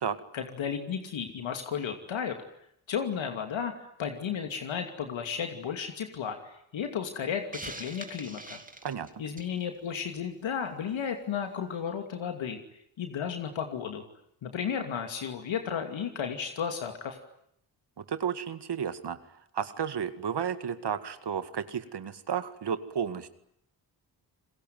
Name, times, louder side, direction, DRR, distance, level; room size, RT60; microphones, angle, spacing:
voice 1, 0.3-2.4 2.9-8.6 9.2-12.6 13.0-14.0 14.4-17.2, left 7 dB, 75° left, 5 dB, 2.8 m, -33 dB
Hiss, 7.5-9.6, right 2 dB, 15° right, 3.1 m, -43 dB
voice 2, 18.0-19.2 19.5-23.3, right 7 dB, 60° right, 11 dB, 2.1 m, -32 dB
28.5 x 21.0 x 9.4 m, 0.73 s
supercardioid pair, 50°, 47 cm